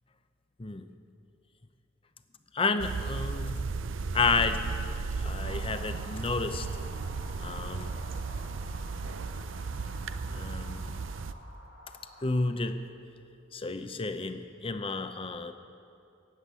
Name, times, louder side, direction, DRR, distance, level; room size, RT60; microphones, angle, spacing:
voice 1, 2.5-3.7 4.1-4.6 5.2-6.7 7.4-7.9 10.3-11.0 12.2-12.8 13.5-15.5, left 4 dB, 30° left, 9 dB, 0.7 m, -31 dB
sound 1, 2.8-11.3, right 4 dB, 90° right, 0.5 m, -35 dB
sound 2, 5.3-12.5, equal, 80° left, 3.2 m, -50 dB
15.0 x 7.9 x 9.0 m, 2.5 s
head